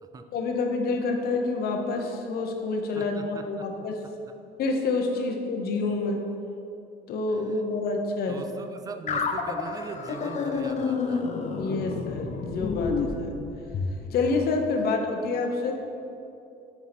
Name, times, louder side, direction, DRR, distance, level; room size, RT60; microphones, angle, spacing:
voice 1, 0.3-4.0 4.6-6.2 7.1-8.4 11.6-13.3 14.1-15.8, left 3 dB, 65° left, 3 dB, 0.9 m, -28 dB
voice 2, 3.0-3.7 7.3-7.6 8.3-11.3 14.7-14.9, right 4 dB, 20° right, 8 dB, 0.4 m, -40 dB
sound 1, 9.1-14.0, left 5 dB, 45° left, 0.6 m, -29 dB
6.9 x 4.6 x 4.3 m, 2.7 s
cardioid pair, 110°, 17 cm